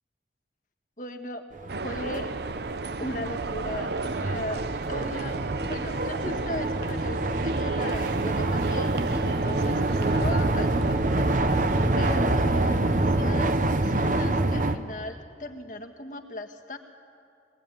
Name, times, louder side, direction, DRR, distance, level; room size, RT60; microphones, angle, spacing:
voice 1, 1.0-1.4 1.8-2.3 3.0-5.4 5.7-16.8, left 1 dB, 45° left, 5 dB, 1.7 m, -38 dB
sound 1, 1.5-14.8, right 2 dB, 45° right, 0.9 m, -26 dB
sound 2, 1.7-12.2, right 4 dB, 65° right, 0.6 m, -33 dB
22.5 x 18.0 x 9.1 m, 2.4 s
head